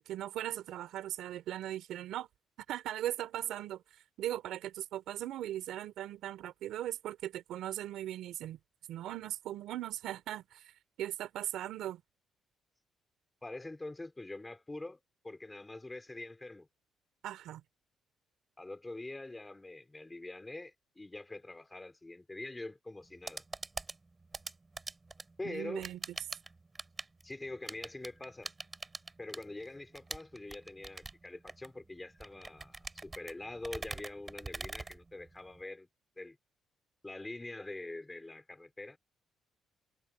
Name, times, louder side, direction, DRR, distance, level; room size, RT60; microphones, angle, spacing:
voice 1, 0.0-2.3 2.7-8.6 8.9-10.7 11.0-12.0 17.2-17.6 25.4-26.0, right 12 dB, 85° right, 3.8 m, -39 dB
voice 2, 13.4-15.0 15.2-16.7 18.6-23.4 25.4-25.9 27.2-28.5 29.2-35.9 36.2-36.4 37.0-39.0, left 2 dB, 15° left, 4.9 m, -44 dB
sound 1, 23.0-35.6, right 3 dB, 25° right, 3.2 m, -45 dB
cardioid pair, 90°, 0 cm